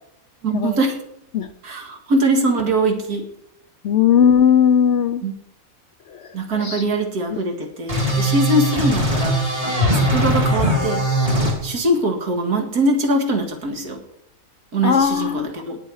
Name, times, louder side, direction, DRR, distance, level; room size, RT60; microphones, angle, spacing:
voice 1, 0.4-1.0 1.6-3.2 5.2-5.3 6.3-11.0 11.6-14.0 14.7-15.8, right 1 dB, 85° right, 4 dB, 2.4 m, -22 dB
voice 2, 3.8-5.2 6.6-6.8 14.8-15.5, left 8 dB, 65° left, 11 dB, 0.8 m, -17 dB
sound 1, 7.9-11.5, right 1 dB, 25° right, 3.1 m, -20 dB
19.0 x 6.9 x 4.8 m, 0.76 s
omnidirectional pair, 1.6 m